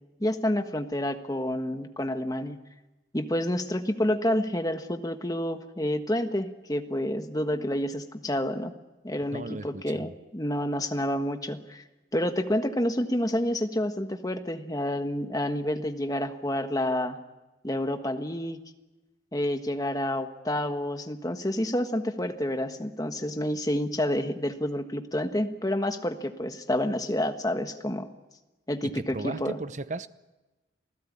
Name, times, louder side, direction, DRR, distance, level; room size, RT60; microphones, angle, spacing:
voice 1, 0.2-2.6 3.1-8.7 9.0-11.8 12.1-17.2 17.6-18.6 19.3-28.1 28.7-29.6, left 1 dB, 20° left, 7 dB, 1.4 m, -29 dB
voice 2, 9.3-10.1 28.8-30.1, right 2 dB, 40° right, 13 dB, 0.8 m, -36 dB
27.5 x 16.0 x 8.7 m, 1.1 s
head